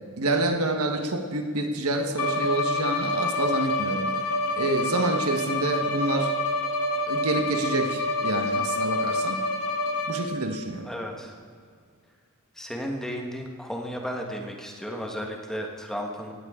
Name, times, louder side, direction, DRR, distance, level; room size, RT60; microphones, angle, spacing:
voice 1, 0.2-4.2 4.6-6.3 7.1-9.5 10.1-10.9, right 2 dB, 80° right, 5 dB, 1.4 m, -27 dB
Bowed string instrument, 2.1-10.4, left 2 dB, 90° left, 1.6 m, -27 dB
voice 2, 10.8-11.3 12.6-16.3, equal, ahead, 1 dB, 1.5 m, -34 dB
18.0 x 15.5 x 3.8 m, 2.1 s
head